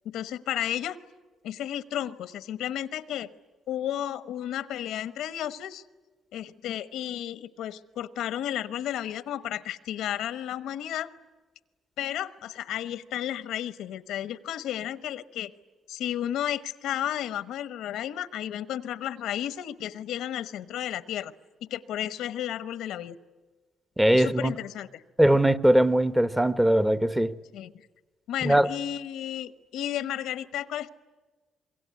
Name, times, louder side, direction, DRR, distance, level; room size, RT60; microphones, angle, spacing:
voice 1, 0.0-1.0 1.4-3.3 3.7-5.8 6.3-11.1 12.0-15.5 15.9-21.3 21.7-23.2 24.1-25.0 27.5-27.7 28.3-30.9, left 11 dB, 85° left, 1.0 m, -33 dB
voice 2, 24.0-24.5 25.2-27.3 28.4-28.7, right 1 dB, 10° right, 0.9 m, -21 dB
26.0 x 23.0 x 9.5 m
cardioid pair, 90°, 0 cm